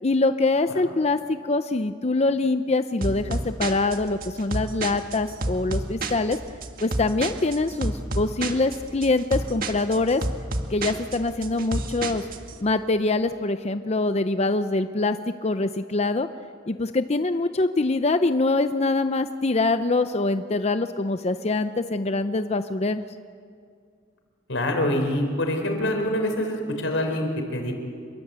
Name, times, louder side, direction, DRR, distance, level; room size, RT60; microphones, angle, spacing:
voice 1, 0.0-6.4 6.8-10.2 10.7-12.3 12.6-16.3 16.7-23.0, left 2 dB, 35° left, 9 dB, 0.6 m, -24 dB
sound 1, 3.0-12.5, right 2 dB, 50° right, 1.8 m, -30 dB
voice 2, 24.5-27.7, left 1 dB, 85° left, 4 dB, 4.6 m, -25 dB
27.0 x 22.5 x 8.2 m, 2.2 s
head